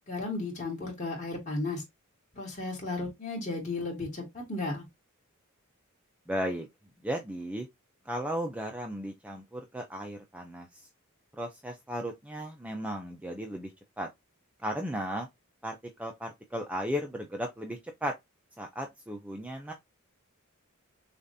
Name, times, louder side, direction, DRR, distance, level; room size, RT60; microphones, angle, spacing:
voice 1, 0.1-1.8 2.3-4.8, left 2 dB, 35° left, 2.5 m, -34 dB
voice 2, 6.3-6.7 7.0-7.7 8.1-10.9 11.3-13.7 14.0-14.1 14.6-15.3 15.6-18.1 18.6-19.7, equal, 5° right, 0.5 m, -35 dB
6.7 x 2.5 x 2.7 m
head